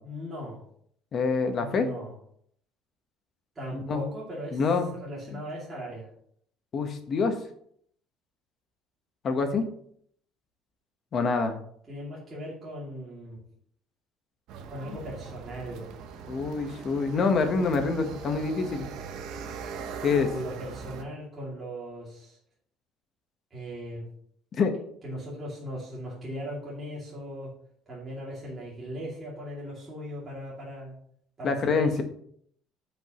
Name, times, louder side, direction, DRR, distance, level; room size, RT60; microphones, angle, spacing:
voice 1, 0.0-0.6 1.5-2.1 3.6-4.6 5.0-6.1 11.9-13.4 14.7-15.9 20.3-22.4 23.5-24.0 25.0-27.5 27.9-31.0 31.4-32.0, equal, 20° right, -7 dB, 2.6 m, -38 dB
voice 2, 1.1-1.9 3.7-4.0 4.5-5.0 6.7-7.3 9.2-9.6 11.1-11.5 16.3-18.9 20.0-20.3 24.6-24.7 31.4-32.0, left 4 dB, 35° left, 6 dB, 1.2 m, -26 dB
sound 1, 14.5-21.0, right 6 dB, 60° right, 0.9 m, -41 dB
13.5 x 5.4 x 3.1 m, 0.64 s
cardioid pair, 165°, 0 cm